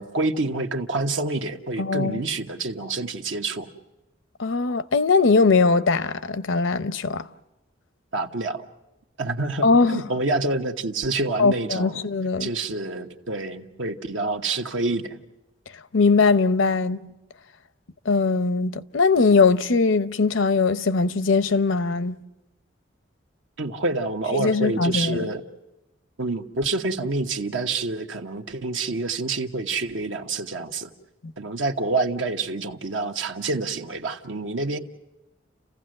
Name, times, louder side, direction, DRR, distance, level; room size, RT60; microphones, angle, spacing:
voice 1, 0.0-3.7 8.1-8.6 9.2-12.0 12.4-15.2 23.6-25.4 26.2-30.9 31.4-34.8, right 3 dB, 75° right, 1.2 m, -27 dB
voice 2, 1.8-2.2 4.4-7.3 9.6-10.0 11.4-12.5 15.9-17.0 18.1-22.2 24.3-25.3 31.2-31.3, left 4 dB, 75° left, 0.7 m, -20 dB
29.0 x 15.5 x 7.7 m
head